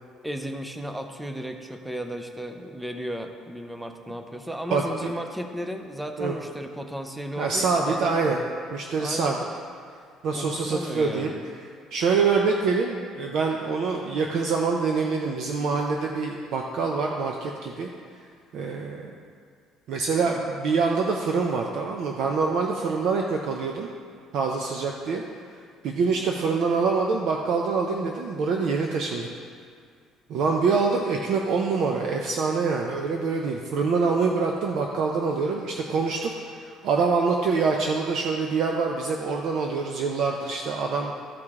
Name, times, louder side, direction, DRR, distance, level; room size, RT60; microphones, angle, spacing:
voice 1, 0.2-8.3 9.0-9.4 10.3-11.4 20.2-20.4, equal, 5° right, 5 dB, 0.5 m, -34 dB
voice 2, 4.7-5.1 6.2-6.3 7.4-8.4 8.7-9.4 10.2-11.3 11.9-17.9 18.5-19.1 19.9-23.9 24.3-25.2 25.8-29.3 30.3-41.2, right 4 dB, 55° right, 1 dB, 0.5 m, -25 dB
13.0 x 4.8 x 3.6 m, 2.2 s
cardioid pair, 170°, 0 cm